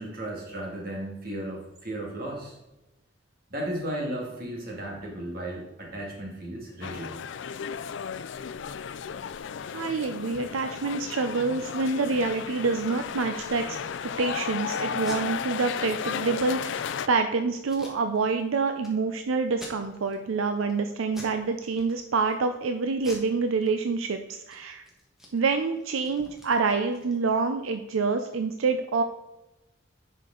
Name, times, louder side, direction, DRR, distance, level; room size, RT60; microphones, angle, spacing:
voice 1, 0.0-2.6 3.5-7.2, right 1 dB, 45° right, -1 dB, 2.1 m, -35 dB
sound 1, 6.8-17.1, left 7 dB, 65° left, 0.3 m, -34 dB
voice 2, 9.7-13.8 14.2-16.8 17.1-24.8 25.3-29.0, right 4 dB, 85° right, 7 dB, 0.5 m, -27 dB
Packing tape duct tape, 14.9-15.2 15.6-15.8 16.0-16.1 16.6-17.0 17.6-18.4 18.8-18.9 19.5-20.2 20.6-20.8 21.1-21.4 21.7-22.3 23.0-24.1 24.4-24.6 24.8-27.5, left 1 dB, ahead, 1.3 m, -46 dB
10.0 x 5.2 x 3.8 m, 0.99 s
head